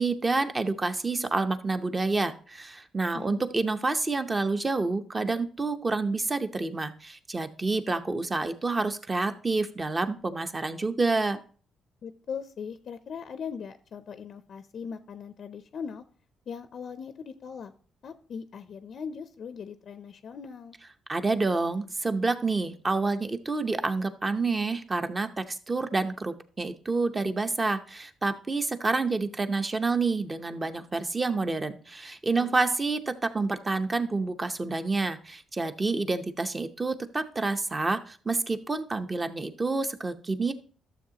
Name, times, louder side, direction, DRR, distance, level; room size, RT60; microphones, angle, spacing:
voice 1, 0.0-11.4 21.1-40.5, right 3 dB, 25° right, 9 dB, 0.7 m, -28 dB
voice 2, 12.0-16.0 16.5-17.7 18.0-20.8 32.4-32.6, left 6 dB, 55° left, 11 dB, 0.5 m, -39 dB
12.5 x 7.0 x 2.8 m, 0.43 s
cardioid pair, 90°, 0 cm